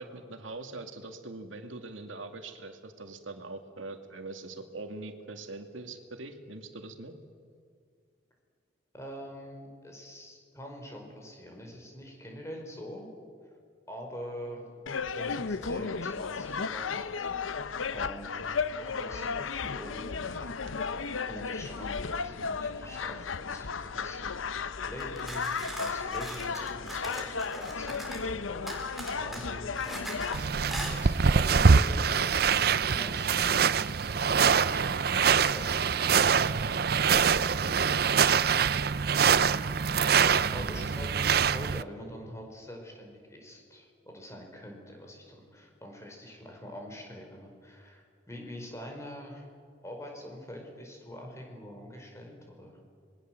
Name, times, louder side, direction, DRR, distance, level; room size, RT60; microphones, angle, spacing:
voice 1, 0.0-7.1, right 2 dB, 85° right, 6 dB, 2.3 m, -42 dB
voice 2, 8.9-13.1 13.9-14.7 15.1-17.1 17.9-18.4 18.8-20.5 21.0-33.8 34.5-38.7 40.5-49.5 49.8-52.8, equal, 15° left, 2 dB, 4.8 m, -45 dB
sound 1, 14.9-30.4, left 5 dB, 90° left, 0.8 m, -34 dB
sound 2, 25.0-28.3 28.7-30.4 30.7-31.0, right 1 dB, ahead, 4.0 m, -40 dB
sound 3, 30.3-41.8, right 6 dB, 50° right, 0.5 m, -24 dB
26.5 x 21.5 x 7.7 m, 2.2 s
head